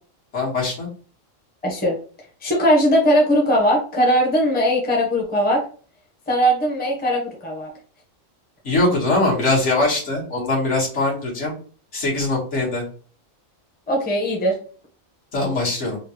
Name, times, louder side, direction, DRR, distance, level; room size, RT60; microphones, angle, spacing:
voice 1, 0.3-0.9 8.6-11.5 11.9-12.8 15.3-16.0, left 2 dB, 65° left, -3 dB, 1.7 m, -21 dB
voice 2, 1.6-2.0 2.4-5.6 6.3-7.7 13.9-14.6, equal, 10° left, -1 dB, 0.7 m, -19 dB
3.9 x 2.3 x 2.9 m, 0.41 s
omnidirectional pair, 1.3 m